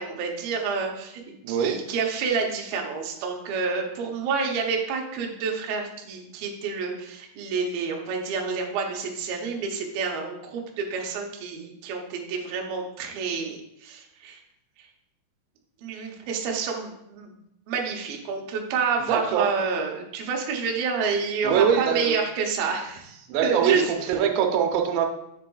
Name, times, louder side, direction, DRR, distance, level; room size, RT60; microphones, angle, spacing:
voice 1, 0.0-14.4 14.8-14.9 15.8-17.3 17.7-23.8, right 5 dB, 75° right, 1 dB, 2.5 m, -29 dB
voice 2, 1.4-1.8 19.1-19.5 21.4-22.2 23.3-25.1, right 8 dB, 90° right, 4 dB, 2.9 m, -23 dB
7.2 x 7.0 x 2.3 m, 0.82 s
omnidirectional pair, 4.9 m